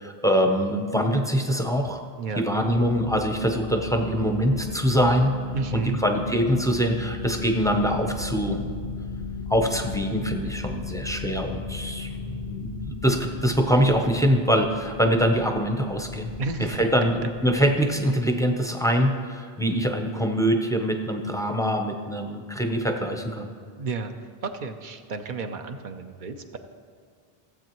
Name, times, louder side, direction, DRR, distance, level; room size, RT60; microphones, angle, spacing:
voice 1, 0.0-2.0 2.4-5.3 5.7-8.6 9.5-16.3 16.6-23.5, equal, 5° left, 3 dB, 0.6 m, -24 dB
sound 1, 2.6-18.8, left 4 dB, 85° left, 1.2 m, -36 dB
voice 2, 5.5-6.0 11.1-11.3 16.4-16.8 23.8-24.1 24.4-26.6, right 4 dB, 55° right, 7 dB, 0.8 m, -32 dB
15.5 x 7.8 x 3.0 m, 2.1 s
omnidirectional pair, 1.0 m